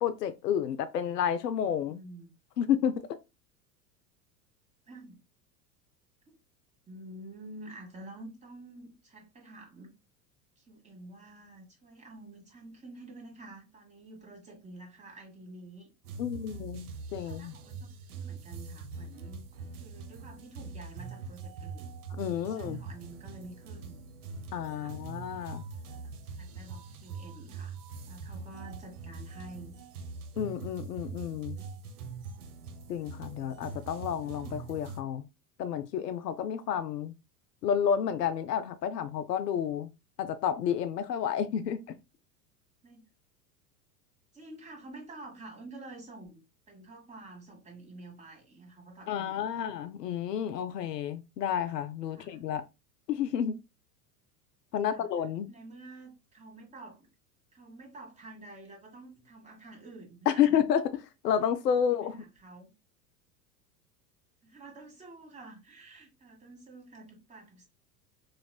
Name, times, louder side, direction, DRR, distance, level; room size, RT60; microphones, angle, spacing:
voice 1, 0.0-2.0 2.6-3.2 16.2-17.5 22.2-22.8 24.5-25.6 30.4-31.6 32.9-35.3 35.6-37.1 37.6-39.9 40.2-42.0 49.1-52.7 53.1-53.6 54.7-55.5 60.3-60.9 61.2-62.2, left 8 dB, 70° left, 0.6 m, -30 dB
voice 2, 1.9-2.3 4.9-5.2 6.3-6.4 6.9-9.9 10.6-15.9 17.2-21.9 22.4-24.0 24.8-25.0 25.8-27.8 28.1-29.8 42.8-43.0 44.3-46.4 46.7-49.7 52.1-52.4 54.8-55.1 55.5-57.1 57.5-60.6 61.8-62.7 64.4-67.7, right 2 dB, 15° right, 1.3 m, -49 dB
sound 1, 16.0-35.0, right 4 dB, 65° right, 0.8 m, -43 dB
4.1 x 3.2 x 2.2 m
figure-of-eight pair, 80°, 50 cm